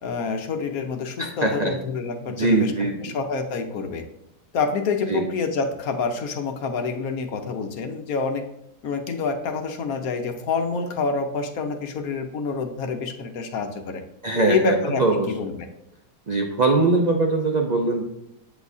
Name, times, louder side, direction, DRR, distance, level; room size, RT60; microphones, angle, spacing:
voice 1, 0.0-4.1 4.5-8.5 8.8-14.0 14.5-15.7, left 4 dB, 65° left, 6 dB, 1.1 m, -27 dB
voice 2, 1.2-1.7 2.3-3.2 5.1-5.2 14.2-15.3 16.3-18.0, right 2 dB, 80° right, 2 dB, 0.3 m, -22 dB
8.4 x 7.7 x 2.7 m, 0.87 s
omnidirectional pair, 1.9 m